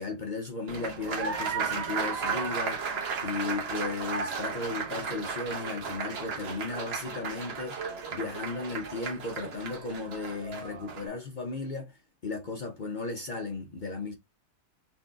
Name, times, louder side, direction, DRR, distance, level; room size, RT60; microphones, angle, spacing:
voice 1, 0.0-2.8 3.2-7.8 8.1-14.1, left 3 dB, 55° left, 0.5 m, -35 dB
Applause, 0.7-11.1, right 5 dB, 50° right, 1.0 m, -34 dB
4.4 x 2.6 x 3.4 m
omnidirectional pair, 1.7 m